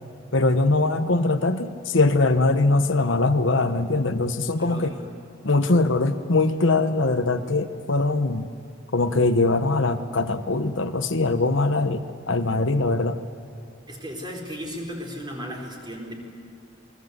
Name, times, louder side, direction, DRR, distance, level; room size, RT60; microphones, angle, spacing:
voice 1, 0.3-4.9 5.4-8.5 8.9-13.2, left 2 dB, 70° left, 9 dB, 1.1 m, -22 dB
voice 2, 4.6-5.1 13.9-16.1, equal, 20° right, 1 dB, 4.3 m, -35 dB
28.5 x 22.0 x 8.1 m, 2.4 s
head